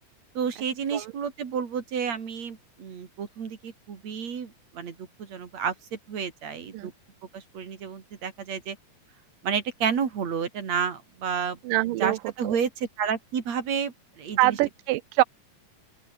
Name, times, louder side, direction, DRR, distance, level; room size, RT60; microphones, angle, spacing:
voice 1, 0.4-6.9 7.3-8.8 9.4-11.6 12.0-14.6, right 7 dB, 55° right, 3.8 m, -31 dB
voice 2, 11.6-12.2 12.4-12.6 14.4-15.2, right 18 dB, 85° right, 2.4 m, -24 dB
open air
omnidirectional pair, 3.8 m